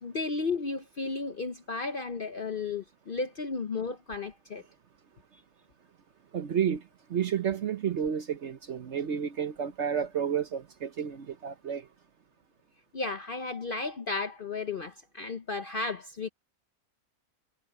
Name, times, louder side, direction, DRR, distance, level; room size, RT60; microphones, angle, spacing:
voice 1, 0.0-4.6 12.9-16.3, left 4 dB, 45° left, 0.7 m, -34 dB
voice 2, 6.3-6.8 7.1-11.8, right 8 dB, 55° right, 0.9 m, -31 dB
omnidirectional pair, 1.7 m